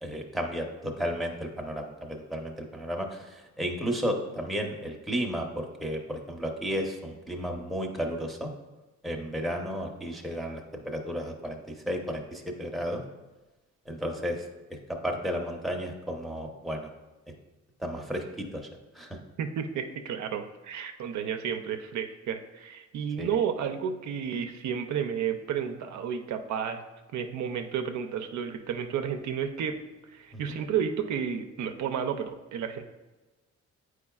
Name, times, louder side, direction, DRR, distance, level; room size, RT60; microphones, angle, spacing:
voice 1, 0.0-8.5 9.0-13.0 13.9-14.4 14.9-16.9 17.8-18.7 18.9-19.2 23.2-23.4 30.3-30.6, equal, ahead, 1 dB, 0.8 m, -33 dB
voice 2, 19.4-26.8 27.1-29.8 30.1-32.8, right 7 dB, 70° right, 6 dB, 0.5 m, -32 dB
8.4 x 4.8 x 2.3 m, 1.1 s
cardioid pair, 90°, 30 cm